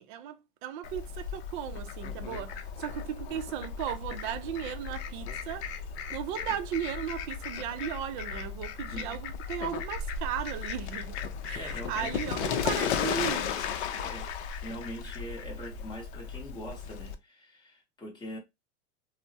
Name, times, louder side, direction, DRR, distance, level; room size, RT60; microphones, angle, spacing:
voice 1, 0.0-5.6 6.1-11.2 11.4-13.5, right 10 dB, 45° right, 0.4 m, -36 dB
Fowl, 0.8-17.1, left 7 dB, 65° left, 0.6 m, -35 dB
voice 2, 11.5-12.4 14.0-18.4, equal, 10° left, 0.8 m, -43 dB
3.3 x 2.0 x 2.7 m
supercardioid pair, 155°, 36 cm